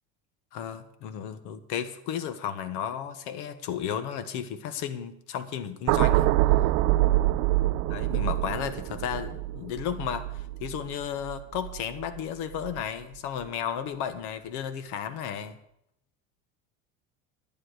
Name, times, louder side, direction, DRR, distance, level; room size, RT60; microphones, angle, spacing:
voice 1, 0.5-6.3 7.9-15.6, left 8 dB, 70° left, 10 dB, 1.4 m, -34 dB
sound 1, 5.9-12.2 12.5-12.8, right 16 dB, 65° right, 0.6 m, -25 dB
11.0 x 10.5 x 4.9 m, 0.76 s
cardioid pair, 140°, 32 cm